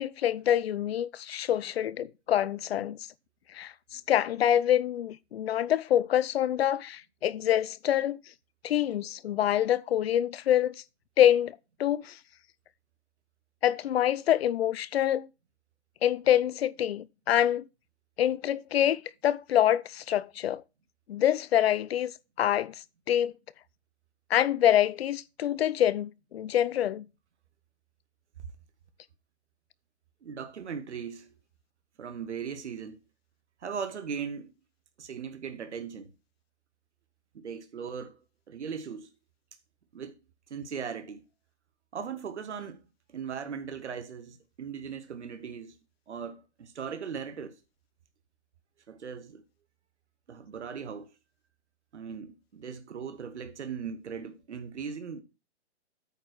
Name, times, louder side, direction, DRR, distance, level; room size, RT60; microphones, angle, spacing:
voice 1, 0.0-3.0 3.5-8.2 8.6-10.7 11.2-12.2 13.6-15.3 16.0-17.6 18.2-20.6 21.1-22.1 22.4-22.7 23.1-23.3 24.3-27.0, left 11 dB, 65° left, 0.6 m, -26 dB
voice 2, 30.2-31.3 32.0-33.0 33.6-34.5 35.0-36.1 37.3-38.2 38.5-39.1 39.9-40.1 40.5-41.2 41.9-42.8 43.1-45.8 46.1-47.6 48.9-49.4 50.3-51.1 51.9-55.2, right 6 dB, 80° right, 1.4 m, -38 dB
8.9 x 4.5 x 6.1 m
hypercardioid pair, 140°, 34 cm